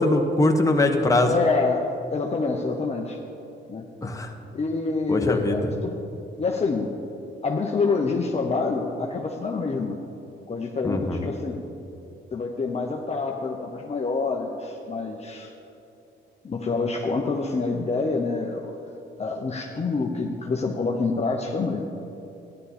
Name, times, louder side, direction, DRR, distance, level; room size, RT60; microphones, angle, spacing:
voice 1, 0.0-1.3 4.0-4.3 5.1-5.6 10.8-11.2, left 2 dB, 15° left, 3 dB, 1.2 m, -21 dB
voice 2, 1.2-3.2 3.7-3.9 4.5-6.0 6.4-6.9 7.4-10.0 10.5-11.6 12.3-15.5 16.4-18.8 19.2-21.8, left 4 dB, 30° left, 0 dB, 0.9 m, -27 dB
13.5 x 11.0 x 4.3 m, 2.8 s
cardioid pair, 90°, 20 cm